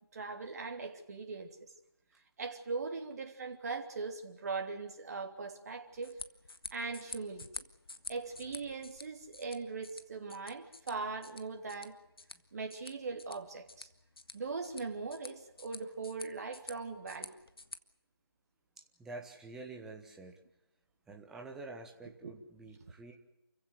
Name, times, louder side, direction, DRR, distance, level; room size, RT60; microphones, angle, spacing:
voice 1, 0.1-1.6 2.4-6.2 6.7-7.6 8.1-12.0 12.5-13.9 14.3-17.3 22.2-22.4, right 4 dB, 40° right, 3 dB, 3.2 m, -40 dB
sound 1, 5.9-17.8, left 3 dB, 65° left, 1.7 m, -50 dB
voice 2, 18.8-20.4 21.1-23.1, right 3 dB, 5° right, 2 dB, 1.3 m, -48 dB
29.0 x 16.0 x 8.1 m, 0.86 s
figure-of-eight pair, 160°, 13 cm